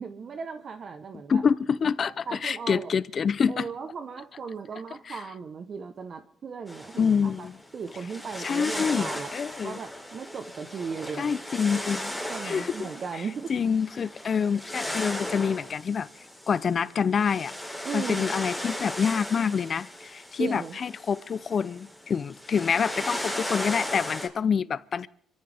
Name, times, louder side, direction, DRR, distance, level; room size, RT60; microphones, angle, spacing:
voice 1, 0.0-1.4 2.3-2.9 3.5-7.5 7.7-9.3 9.6-11.3 11.7-11.9 12.3-13.5 17.8-18.3 20.4-20.8, right 5 dB, 50° right, 1.0 m, -36 dB
voice 2, 1.3-3.7 5.1-5.2 7.0-7.5 8.4-9.8 11.2-12.1 12.4-12.9 13.5-16.1 16.5-17.5 17.9-25.1, left 6 dB, 50° left, 0.5 m, -26 dB
sound 1, 6.7-24.3, equal, 5° right, 3.3 m, -37 dB
26.0 x 14.0 x 3.5 m
cardioid pair, 90°, 0 cm